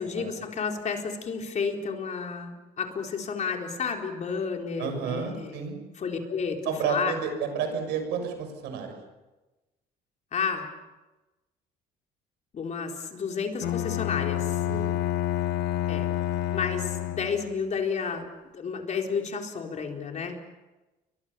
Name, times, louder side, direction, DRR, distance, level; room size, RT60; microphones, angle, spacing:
voice 1, 0.0-5.6 6.0-6.6 6.8-7.1 10.3-10.7 12.5-14.6 15.9-16.1 16.5-18.3 18.5-20.4, left 5 dB, 45° left, 2 dB, 4.2 m, -31 dB
voice 2, 4.8-5.8 6.6-8.9 14.7-15.0, right 6 dB, 90° right, 6 dB, 6.7 m, -31 dB
Bowed string instrument, 13.6-17.6, left 14 dB, 85° left, 1.4 m, -29 dB
29.5 x 24.0 x 7.0 m, 1.1 s
cardioid pair, 110°, 17 cm